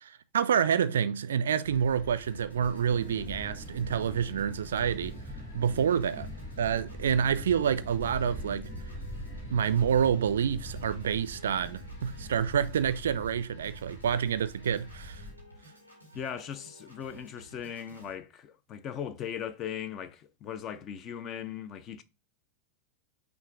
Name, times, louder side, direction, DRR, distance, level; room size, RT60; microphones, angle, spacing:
voice 1, 0.0-5.2 5.5-6.3 6.6-8.7 9.5-15.2, right 8 dB, 65° right, 0.3 m, -28 dB
sound 1, 1.6-15.3, equal, 60° left, 1.9 m, -45 dB
Piano / Organ, 2.1-18.1, equal, 90° left, 1.6 m, -54 dB
sound 2, 2.9-12.4, left 1 dB, ahead, 1.6 m, -45 dB
voice 2, 16.1-22.0, left 8 dB, 30° left, 0.4 m, -38 dB
5.7 x 2.6 x 3.5 m
figure-of-eight pair, 90°, 0 cm